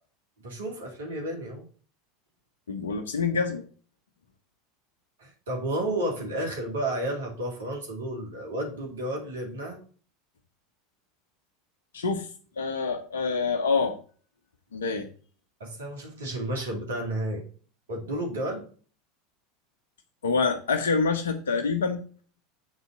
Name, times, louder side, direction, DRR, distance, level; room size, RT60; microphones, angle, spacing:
voice 1, 0.4-1.6 5.2-9.8 15.6-17.4 17.9-18.7, right 1 dB, 80° right, 0 dB, 2.6 m, -32 dB
voice 2, 2.7-3.6 11.9-12.3 12.6-14.0 14.7-15.1 20.2-22.0, left 4 dB, 80° left, 4 dB, 1.0 m, -26 dB
7.3 x 4.1 x 6.0 m, 0.41 s
hypercardioid pair, 80°, 0 cm